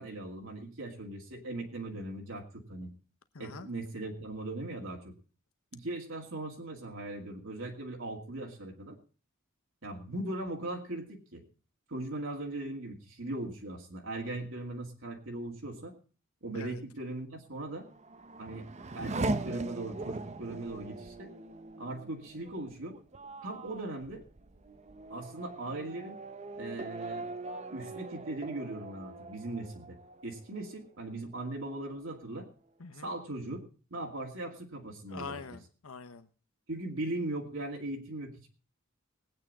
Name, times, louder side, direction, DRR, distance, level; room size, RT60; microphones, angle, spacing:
voice 1, 0.0-2.9 3.4-5.2 5.7-9.0 9.8-11.4 11.9-15.9 16.4-17.9 18.4-18.7 18.9-21.3 21.8-23.0 23.4-24.2 25.1-26.2 26.6-27.3 27.7-30.0 30.2-32.5 33.0-33.6 33.9-35.4 36.7-38.5, right 2 dB, 65° right, 0 dB, 2.3 m, -39 dB
voice 2, 3.3-3.7 16.5-16.8 32.8-33.1 35.1-36.3, left 4 dB, 90° left, 10 dB, 1.0 m, -44 dB
Race car auto racing / Accelerating revving vroom, 17.7-30.9 31.3-32.0, right 2 dB, 30° right, 0.7 m, -41 dB
20.0 x 9.1 x 4.1 m, 0.37 s
head